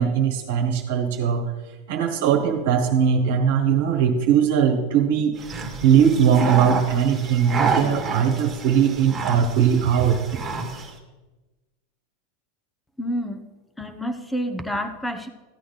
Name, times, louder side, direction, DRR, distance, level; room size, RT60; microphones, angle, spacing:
voice 1, 0.0-1.5 1.9-5.4 5.8-10.2, right 8 dB, 70° right, 3 dB, 1.3 m, -20 dB
sound 1, 5.4-10.9, right 4 dB, 15° right, 1.7 m, -29 dB
voice 2, 13.0-13.4 13.8-15.3, equal, 5° left, 9 dB, 0.9 m, -28 dB
14.0 x 8.5 x 4.0 m, 1.2 s
supercardioid pair, 135°, 0 cm